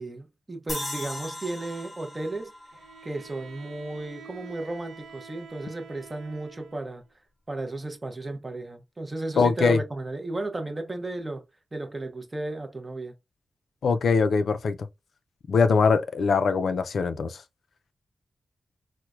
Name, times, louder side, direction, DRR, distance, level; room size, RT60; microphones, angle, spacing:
voice 1, 0.0-2.5 3.0-7.0 7.5-11.4 11.7-13.1, right 2 dB, 20° right, 0.6 m, -34 dB
sound 1, 0.7-4.0, left 1 dB, 15° left, 0.8 m, -38 dB
Bowed string instrument, 2.7-7.0, right 6 dB, 75° right, 0.8 m, -48 dB
voice 2, 9.4-9.8 13.8-14.8 15.5-17.4, left 5 dB, 70° left, 0.3 m, -22 dB
4.4 x 2.1 x 2.4 m
wide cardioid pair, 160°, 0 cm